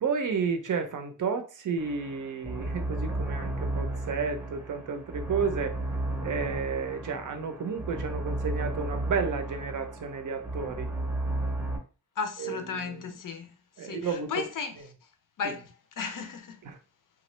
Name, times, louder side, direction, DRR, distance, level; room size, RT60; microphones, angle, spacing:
voice 1, 0.0-5.8 6.2-10.9 12.4-13.1 13.8-14.5 15.4-15.5 16.6-16.8, right 5 dB, 45° right, 0.6 m, -32 dB
sound 1, 1.8-11.8, right 2 dB, 5° right, 0.7 m, -33 dB
voice 2, 12.2-13.5 13.8-14.8 15.4-15.7 16.0-16.6, left 6 dB, 50° left, 0.6 m, -34 dB
3.0 x 2.4 x 3.1 m
wide cardioid pair, 155°, 42 cm